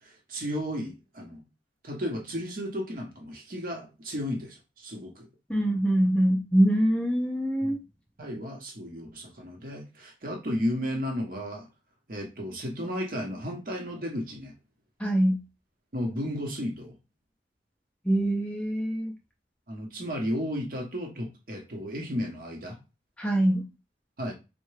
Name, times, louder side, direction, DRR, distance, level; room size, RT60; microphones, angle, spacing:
voice 1, 0.0-1.4 1.8-5.3 7.6-7.9 8.2-11.7 12.1-14.5 15.9-16.9 19.7-22.8 24.2-24.3, equal, 50° right, 1 dB, 0.8 m, -33 dB
voice 2, 5.5-7.8 15.0-15.4 18.1-19.1 23.2-23.6, right 1 dB, 5° left, 2 dB, 0.4 m, -24 dB
3.5 x 2.1 x 3.2 m, 0.27 s
head